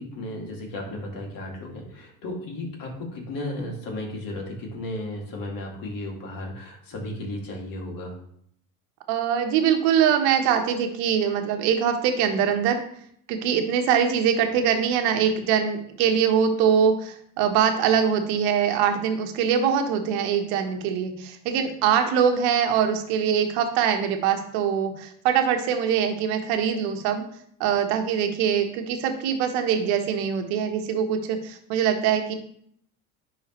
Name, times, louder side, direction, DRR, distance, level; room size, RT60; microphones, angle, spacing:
voice 1, 0.0-8.2, left 1 dB, 50° left, 0 dB, 2.5 m, -34 dB
voice 2, 9.1-12.8 13.3-27.2 27.6-32.3, right 8 dB, 70° right, 5 dB, 1.2 m, -23 dB
10.0 x 3.8 x 3.1 m, 0.66 s
hypercardioid pair, 75°, 41 cm